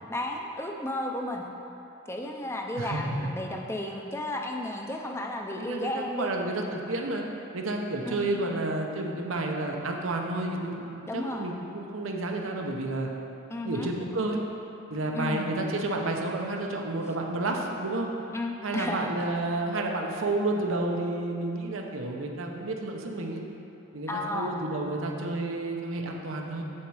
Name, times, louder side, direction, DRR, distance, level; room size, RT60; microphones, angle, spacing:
voice 1, 0.1-1.4 2.1-6.3 8.0-8.2 11.1-11.5 13.5-13.9 15.1-15.5 18.3-19.1 24.1-24.5, left 1 dB, 15° left, 1 dB, 0.5 m, -33 dB
voice 2, 2.7-3.1 5.6-7.2 7.5-10.8 11.1-13.1 13.6-14.4 14.9-18.1 18.6-23.4 23.9-26.6, right 2 dB, 90° right, 1 dB, 0.9 m, -30 dB
7.5 x 7.1 x 4.8 m, 2.9 s
head